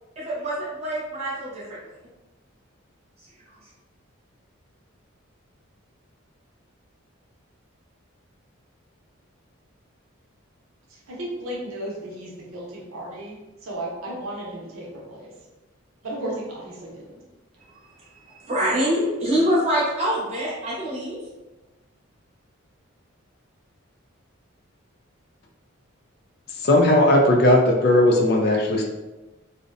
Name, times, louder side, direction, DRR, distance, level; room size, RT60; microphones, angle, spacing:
voice 1, 0.2-1.8 18.3-21.2, equal, 30° right, -7 dB, 0.8 m, -25 dB
voice 2, 10.9-15.3 16.0-17.2, right 1 dB, 80° right, -3 dB, 0.7 m, -34 dB
voice 3, 26.6-28.8, left 1 dB, 45° left, 1 dB, 0.3 m, -17 dB
2.6 x 2.0 x 2.5 m, 1.1 s
head